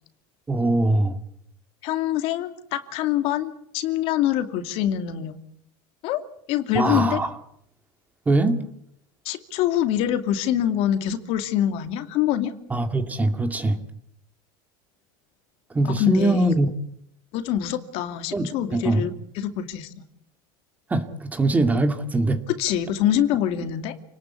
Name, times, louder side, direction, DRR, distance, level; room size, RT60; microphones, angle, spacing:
voice 1, 0.5-1.2 6.7-7.3 8.3-8.6 12.7-13.8 15.7-16.7 18.3-19.1 20.9-22.4, right 2 dB, 15° right, 8 dB, 2.2 m, -22 dB
voice 2, 1.8-5.4 6.0-6.2 6.5-7.2 9.2-12.5 16.0-16.5 17.3-19.1 19.4-19.9 22.6-23.9, left 11 dB, 55° left, 8 dB, 2.6 m, -25 dB
29.0 x 19.5 x 8.3 m, 0.73 s
supercardioid pair, 145°, 12 cm